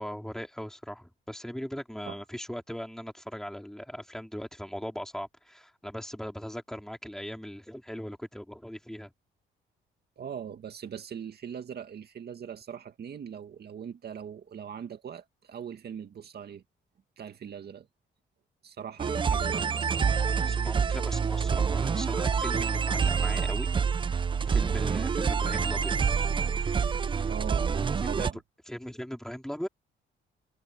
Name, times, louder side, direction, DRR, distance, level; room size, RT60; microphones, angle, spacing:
voice 1, 0.0-9.1 20.4-23.7 24.0-24.1 24.4-25.9 26.4-27.3 27.8-28.3 28.7-29.7, equal, ahead, 3.9 m, -39 dB
voice 2, 10.2-16.6 17.2-17.9 18.6-20.1 24.8-25.0 27.3-27.7 28.1-28.4, right 8 dB, 55° right, 2.2 m, -40 dB
sound 1, 19.0-28.3, right 6 dB, 25° right, 0.4 m, -27 dB
cardioid pair, 90°, 20 cm